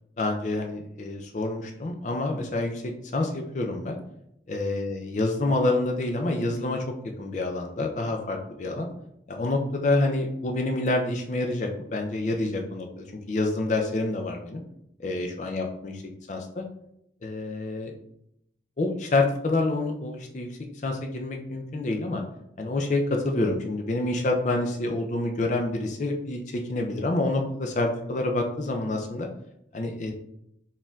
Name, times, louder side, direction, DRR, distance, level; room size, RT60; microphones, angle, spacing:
voice 1, 0.2-4.0 4.5-6.8 7.2-8.9 9.3-14.6 15.0-15.9 16.3-16.6 17.2-17.9 18.8-20.5 20.8-22.2 22.6-29.3 29.7-30.1, left 2 dB, 45° left, 2 dB, 0.4 m, -27 dB
4.3 x 3.6 x 2.3 m, 0.78 s
head